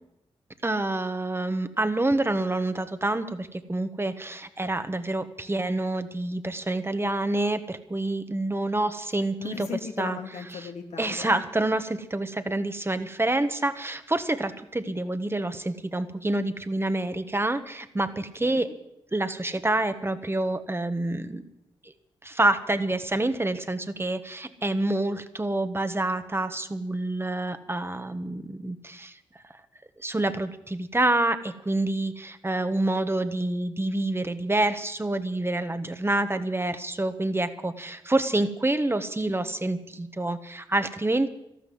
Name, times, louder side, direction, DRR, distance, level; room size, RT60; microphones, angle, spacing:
voice 1, 0.6-9.7 10.0-10.2 11.0-18.7 19.1-21.4 22.2-29.1 30.0-41.3, right 2 dB, 20° right, 10 dB, 1.3 m, -27 dB
voice 2, 9.4-11.7 12.2-12.5 18.4-18.7, left 6 dB, 85° left, 5 dB, 1.7 m, -37 dB
13.0 x 12.0 x 7.8 m, 0.82 s
cardioid pair, 50°, 11 cm